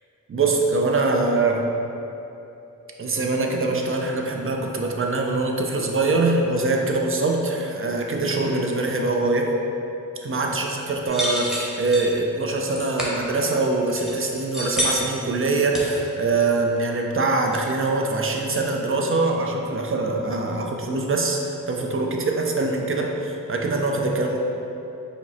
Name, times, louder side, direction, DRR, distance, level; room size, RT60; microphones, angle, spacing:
voice 1, 0.3-1.6 3.0-9.5 10.2-24.4, right 3 dB, 40° right, 1 dB, 0.5 m, -23 dB
sound 1, 11.1-12.1 12.7-13.1 13.9-15.2 15.7-16.3 16.7-16.8 17.2-17.3 17.5-17.6, equal, ahead, 0.9 m, -28 dB
4.9 x 2.1 x 4.1 m, 2.9 s
wide cardioid pair, 75°, 33 cm